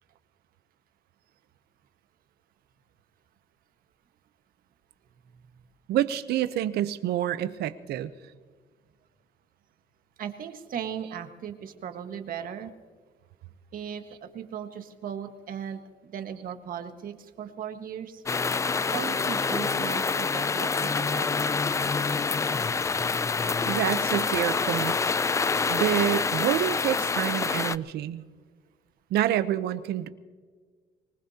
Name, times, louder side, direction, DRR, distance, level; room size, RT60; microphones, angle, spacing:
voice 1, 5.9-8.1 23.7-25.0 25.7-28.2 29.1-30.1, right 12 dB, 70° right, 13 dB, 0.8 m, -27 dB
voice 2, 10.2-12.7 13.7-18.2 18.9-21.4, right 8 dB, 55° right, 6 dB, 1.6 m, -37 dB
sound 1, 18.3-27.8, left 4 dB, 20° left, 0.3 m, -26 dB
25.0 x 19.5 x 2.9 m, 1.5 s
cardioid pair, 110°, 17 cm